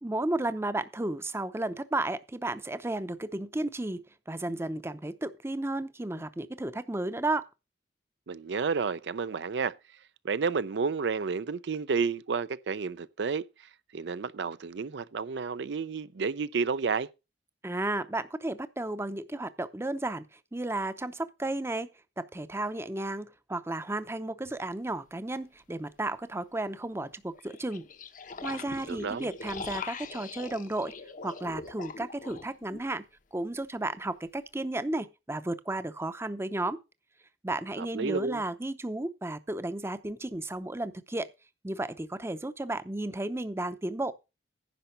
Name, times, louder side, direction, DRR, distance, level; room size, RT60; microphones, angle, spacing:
voice 1, 0.0-7.5 17.6-21.9 22.2-27.9 28.4-30.9 31.2-33.0 33.3-36.8 37.4-41.3 41.6-44.1, right 2 dB, 15° right, 0.6 m, -33 dB
voice 2, 8.3-9.7 10.2-17.1 28.9-29.3 37.8-38.4, right 5 dB, 75° right, 0.5 m, -31 dB
sound 1, 24.4-24.5 27.3-32.9, left 4 dB, 50° left, 0.8 m, -42 dB
10.5 x 5.6 x 6.6 m
head